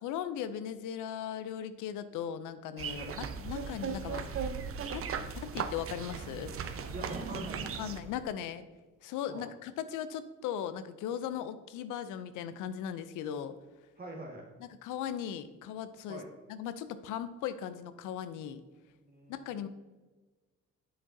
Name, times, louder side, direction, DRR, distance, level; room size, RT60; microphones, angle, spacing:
voice 1, 0.0-4.4 4.9-5.1 5.4-6.5 7.8-8.7 9.0-13.6 14.6-16.2 16.5-18.6 19.3-19.7, left 9 dB, 90° left, 12 dB, 0.5 m, -38 dB
sound 1, 2.8-8.0, right 6 dB, 50° right, 0.6 m, -38 dB
sound 2, 3.2-8.2, right 3 dB, 65° right, 1.7 m, -48 dB
voice 2, 6.9-7.8 9.3-9.5 14.0-14.5 16.1-16.3 19.0-19.7, right 1 dB, 30° right, 0 dB, 1.8 m, -44 dB
7.5 x 6.0 x 2.7 m, 1.2 s
cardioid pair, 90°, 30 cm